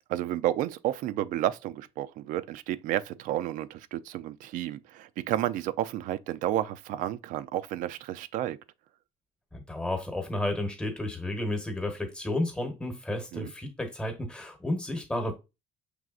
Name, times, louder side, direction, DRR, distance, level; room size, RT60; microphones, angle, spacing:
voice 1, 0.1-8.6 13.3-13.5, right 13 dB, 75° right, 0.4 m, -31 dB
voice 2, 9.5-15.3, left 1 dB, 5° left, 1.1 m, -32 dB
6.2 x 3.3 x 2.4 m
cardioid pair, 180°, 14 cm